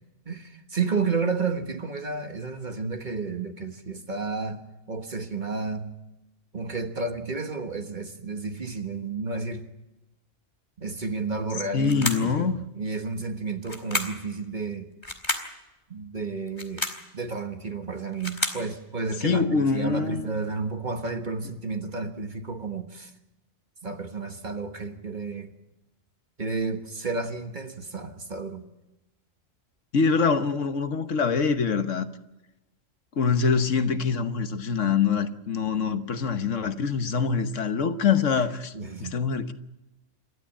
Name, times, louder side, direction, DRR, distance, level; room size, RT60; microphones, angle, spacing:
voice 1, 0.3-5.9 6.5-9.7 10.8-14.9 15.9-16.9 17.1-23.1 23.8-25.5 26.4-28.7 38.7-39.2, right 4 dB, 40° right, 1.5 m, -31 dB
voice 2, 11.7-12.6 19.2-20.4 29.9-32.1 33.2-38.7 39.0-39.5, left 5 dB, 70° left, 1.4 m, -24 dB
sound 1, 11.8-12.4 13.7-14.3 15.0-15.5 16.5-17.1 17.9-18.7, left 2 dB, 20° left, 2.2 m, -30 dB
27.5 x 13.0 x 8.6 m
omnidirectional pair, 1.3 m